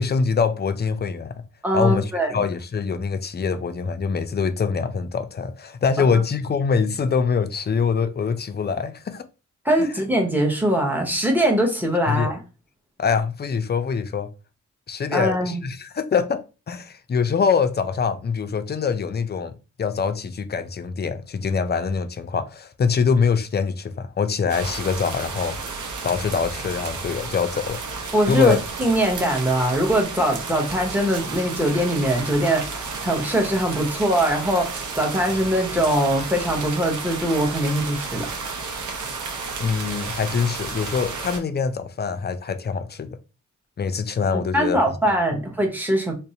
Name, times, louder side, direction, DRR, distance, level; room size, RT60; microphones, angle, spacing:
voice 1, 0.0-1.4 1.7-9.2 12.1-12.3 13.0-14.3 14.9-25.6 26.0-27.8 28.3-28.6 39.6-43.2 43.8-44.8, left 5 dB, 35° left, 0.4 m, -24 dB
voice 2, 1.6-2.4 9.6-12.4 15.1-15.6 28.1-38.3 44.5-46.1, right 1 dB, 5° right, 0.8 m, -22 dB
sound 1, 24.5-41.4, right 4 dB, 70° right, 0.6 m, -32 dB
2.5 x 2.1 x 2.7 m
cardioid pair, 50°, 31 cm